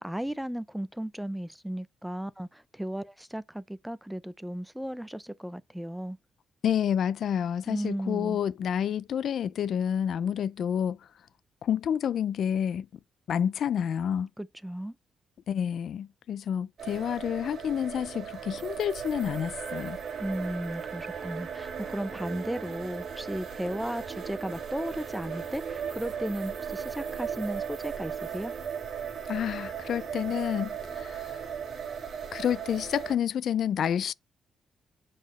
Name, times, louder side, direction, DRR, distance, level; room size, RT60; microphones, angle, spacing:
voice 1, 0.0-6.2 7.7-8.4 14.4-14.9 20.2-28.5, right 1 dB, 5° right, 0.5 m, -35 dB
voice 2, 6.6-11.0 11.6-12.9 13.3-14.3 15.5-20.0 29.3-31.4 32.3-34.1, left 9 dB, 65° left, 0.3 m, -29 dB
sound 1, 16.8-33.2, right 7 dB, 55° right, 1.9 m, -37 dB
7.1 x 4.2 x 4.1 m
cardioid pair, 115°, 0 cm